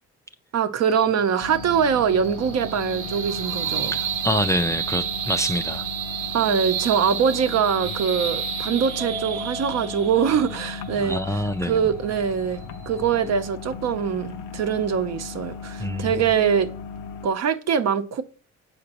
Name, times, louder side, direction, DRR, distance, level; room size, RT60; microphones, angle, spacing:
voice 1, 0.5-4.0 6.3-16.7 17.2-18.2, right 7 dB, 60° right, 0.7 m, -23 dB
sound 1, 0.8-13.4, right 9 dB, 85° right, 0.9 m, -32 dB
sound 2, 1.4-17.3, left 5 dB, 90° left, 0.6 m, -37 dB
voice 2, 3.9-5.9 11.0-11.8 15.8-16.2, equal, 10° left, 0.4 m, -26 dB
Mallet percussion, 9.0-11.4, right 1 dB, 10° right, 0.8 m, -38 dB
7.6 x 5.1 x 2.9 m
cardioid pair, 90°, 30 cm